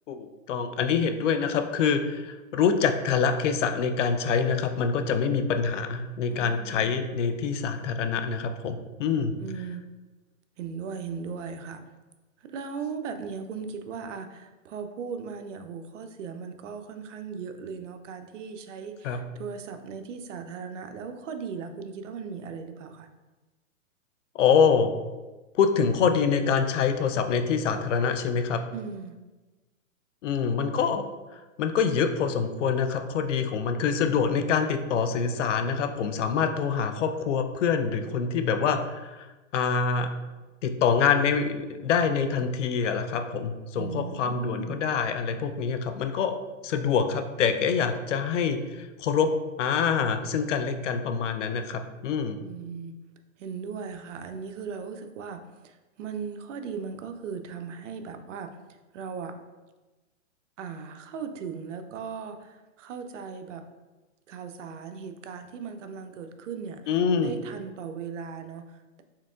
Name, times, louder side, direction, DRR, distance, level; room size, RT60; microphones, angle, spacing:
voice 1, 0.1-9.3 19.0-19.2 24.3-24.9 25.5-28.6 30.2-31.0 31.3-39.3 39.5-40.1 40.6-46.4 46.6-49.3 49.6-52.4 66.9-67.3, left 6 dB, 65° left, 7 dB, 0.5 m, -25 dB
voice 2, 6.3-6.9 9.4-9.9 10.6-11.8 12.4-23.1 28.7-29.1 43.7-44.8 52.4-53.0 53.4-59.4 60.6-63.6 64.3-66.9 67.2-69.0, right 6 dB, 65° right, 7 dB, 0.5 m, -38 dB
4.5 x 3.6 x 2.4 m, 1.2 s
hypercardioid pair, 140°, 41 cm